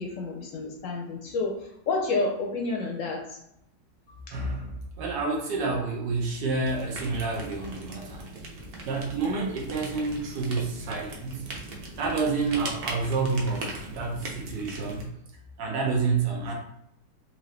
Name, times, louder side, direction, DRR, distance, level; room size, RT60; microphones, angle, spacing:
voice 1, 0.0-3.4, left 3 dB, 70° left, 1 dB, 0.8 m, -30 dB
voice 2, 4.3-8.2 8.8-11.5 12.0-15.1 15.6-16.5, right 4 dB, 85° right, -1 dB, 1.4 m, -29 dB
sound 1, 6.7-15.1, right 2 dB, 65° right, 0.6 m, -39 dB
3.8 x 2.8 x 3.1 m, 0.78 s
omnidirectional pair, 1.9 m